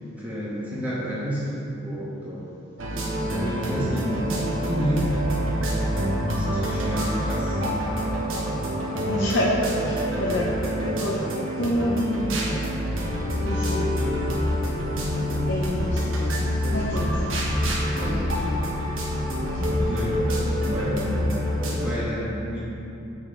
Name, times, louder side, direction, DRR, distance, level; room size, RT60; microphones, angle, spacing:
voice 1, 0.2-2.4 3.3-5.1 6.0-8.0 10.0-10.1 18.0-18.3 19.6-21.3 21.7-22.6, equal, 10° right, -9 dB, 1.3 m, -31 dB
sound 1, 2.8-21.9, equal, 80° right, 1.1 m, -26 dB
voice 2, 3.4-3.7 9.0-9.5 9.8-11.2 11.5-12.4 13.4-13.9 15.2-16.4 16.7-17.3 18.0-18.6 19.4-19.9, left 1 dB, 60° left, -5 dB, 0.7 m, -29 dB
8.9 x 4.4 x 3.7 m, 2.8 s
head